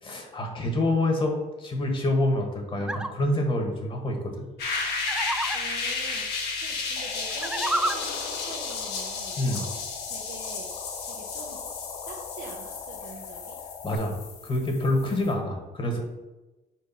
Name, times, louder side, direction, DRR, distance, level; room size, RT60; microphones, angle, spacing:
voice 1, 0.0-4.5 9.4-9.7 13.8-14.2 14.4-16.0, left 1 dB, 30° left, 3 dB, 1.4 m, -27 dB
voice 2, 2.7-3.0 5.5-10.7 11.0-11.6 12.0-13.6 15.1-15.2, right 4 dB, 90° right, -3 dB, 1.1 m, -44 dB
sound 1, 2.8-3.1 5.1-5.6 7.3-8.0, right 1 dB, 5° right, 0.4 m, -28 dB
sound 2, 4.6-15.3, left 4 dB, 70° left, 1.6 m, -33 dB
sound 3, 7.0-14.0, left 7 dB, 90° left, 0.6 m, -41 dB
4.6 x 4.5 x 5.7 m, 1.1 s
cardioid pair, 110°, 17 cm